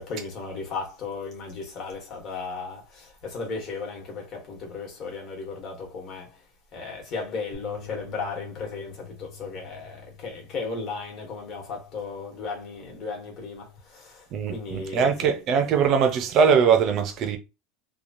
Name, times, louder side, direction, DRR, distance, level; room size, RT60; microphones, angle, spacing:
voice 1, 0.0-6.4 6.7-15.3, left 4 dB, 35° left, 1.1 m, -35 dB
sound 1, 7.5-13.8, left 5 dB, 15° left, 0.8 m, -48 dB
voice 2, 14.3-17.4, right 6 dB, 35° right, 0.5 m, -21 dB
2.9 x 2.3 x 2.6 m
supercardioid pair, 170°, 0 cm